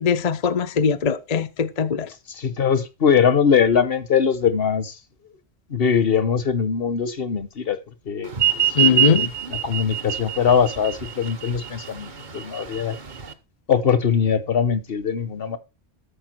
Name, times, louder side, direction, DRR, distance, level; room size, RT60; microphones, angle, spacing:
voice 1, 0.0-2.1 8.8-9.3, left 6 dB, 45° left, 0.7 m, -21 dB
voice 2, 2.4-4.9 5.7-7.8 8.1-13.0 13.7-15.6, left 7 dB, 65° left, 1.3 m, -21 dB
sound 1, 8.3-13.3, right 11 dB, 50° right, 1.2 m, -24 dB
13.0 x 7.0 x 4.4 m
omnidirectional pair, 1.1 m